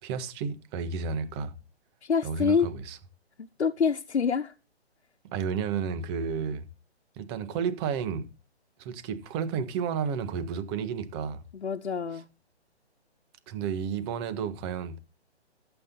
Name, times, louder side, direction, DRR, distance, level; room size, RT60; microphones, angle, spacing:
voice 1, 0.0-1.5 2.2-3.0 5.3-6.6 7.2-8.3 8.8-11.4 13.5-15.0, right 6 dB, 25° right, 1.5 m, -32 dB
voice 2, 2.0-2.7 3.6-4.5 11.5-12.2, left 6 dB, 80° left, 1.2 m, -26 dB
14.0 x 8.3 x 3.9 m
figure-of-eight pair, 145°, 33 cm